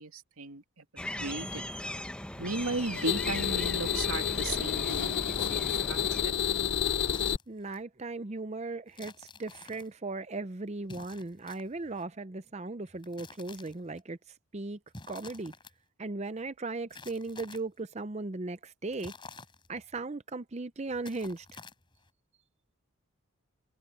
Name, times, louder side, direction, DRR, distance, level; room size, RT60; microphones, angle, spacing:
voice 1, 0.0-1.6 2.4-6.3, right 2 dB, 80° right, 2.6 m, -36 dB
sound 1, 1.0-6.2, left 1 dB, 5° left, 1.0 m, -40 dB
sound 2, 2.5-7.4, left 8 dB, 50° left, 0.5 m, -30 dB
sound 3, 4.9-5.9 6.9-7.8 8.9-9.9 10.8-12.0 12.9-14.0 14.9-15.7 16.9-17.8 18.9-20.0 20.9-22.1, left 3 dB, 20° left, 4.2 m, -50 dB
voice 2, 7.5-14.2 14.5-14.8 15.1-15.5 16.0-19.1 19.7-21.6, right 3 dB, 30° right, 0.6 m, -37 dB
head